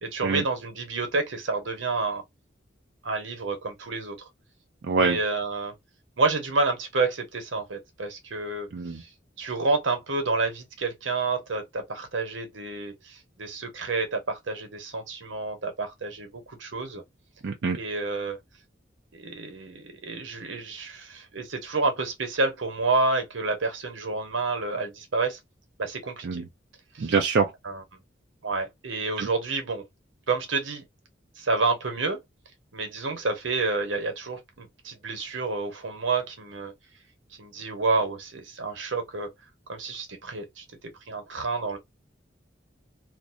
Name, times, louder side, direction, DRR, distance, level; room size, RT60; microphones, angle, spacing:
voice 1, 0.0-2.2 3.0-4.1 5.0-5.7 6.2-8.7 8.9-9.1 9.4-17.0 17.8-18.4 19.1-25.4 25.8-26.4 26.9-27.1 27.6-27.8 28.4-29.8 30.3-30.8 31.4-32.2 32.7-36.7 37.4-39.3 39.7-40.6 41.1-41.8, right 3 dB, 85° right, 0.9 m, -29 dB
voice 2, 4.8-5.2 8.7-9.0 17.4-17.8 26.2-26.4 27.0-27.5 29.2-29.3, right 4 dB, 65° right, 0.4 m, -24 dB
2.5 x 2.0 x 2.4 m
head